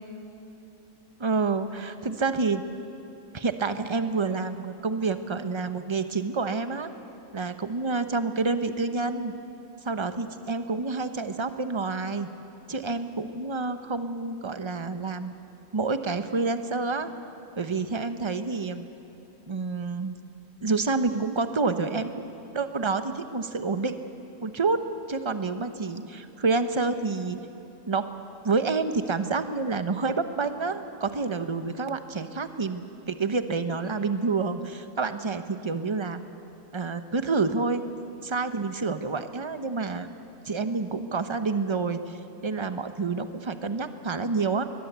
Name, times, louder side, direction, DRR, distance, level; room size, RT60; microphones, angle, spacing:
voice 1, 1.2-2.6 3.3-6.9 7.3-9.3 9.8-12.3 12.7-15.3 15.7-17.1 17.6-18.9 19.5-20.2 20.6-23.9 24.4-24.8 25.1-27.4 27.9-28.0 28.4-36.2 36.7-37.8 38.2-40.1 40.4-42.2 42.4-44.6, right 4 dB, 25° right, 9 dB, 0.9 m, -28 dB
22.0 x 21.5 x 8.2 m, 2.9 s
omnidirectional pair, 1.4 m